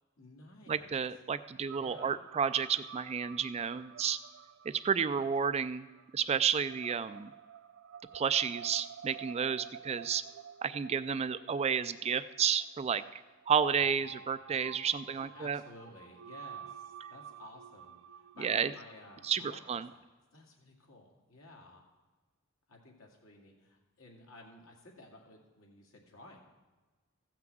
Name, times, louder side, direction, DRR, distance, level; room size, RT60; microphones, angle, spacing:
voice 1, 0.2-0.9 1.7-2.2 5.0-5.3 15.0-19.6 19.9-20.0 20.3-21.8 22.7-26.4, left 2 dB, 70° left, 0 dB, 2.3 m, -54 dB
voice 2, 0.7-4.2 4.7-5.9 6.1-7.3 8.1-10.2 10.6-15.6 18.4-18.7 19.2-19.9, right 7 dB, 30° right, 13 dB, 0.3 m, -31 dB
sound 1, 1.7-19.8, right 9 dB, 85° right, 0.5 m, -51 dB
15.0 x 5.9 x 7.7 m, 1.3 s
head